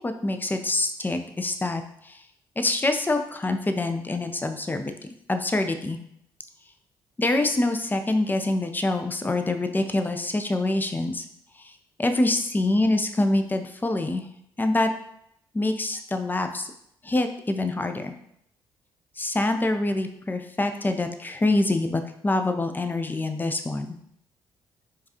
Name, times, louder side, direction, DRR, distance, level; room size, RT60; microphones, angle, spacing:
voice 1, 0.0-2.2 2.6-4.9 5.3-6.0 7.2-11.2 11.6-11.7 12.0-14.3 14.6-14.9 15.5-16.7 17.0-18.1 19.2-23.9, left 2 dB, 15° left, 7 dB, 0.5 m, -25 dB
4.6 x 2.4 x 2.8 m, 0.73 s
hypercardioid pair, 45°, 12 cm